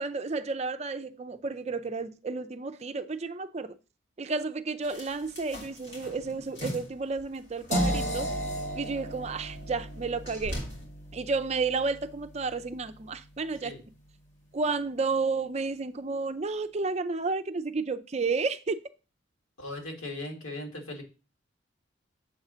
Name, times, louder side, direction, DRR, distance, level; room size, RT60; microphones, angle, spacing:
voice 1, 0.0-3.8 4.2-8.3 8.7-10.6 11.1-13.7 14.5-18.8, right 4 dB, 30° right, 0.4 m, -31 dB
sound 1, 4.8-10.8, equal, 55° left, 2.9 m, -43 dB
sound 2, 7.7-13.6, equal, 35° left, 2.1 m, -34 dB
voice 2, 19.6-21.0, left 2 dB, 90° left, 2.0 m, -38 dB
7.3 x 3.9 x 6.1 m
head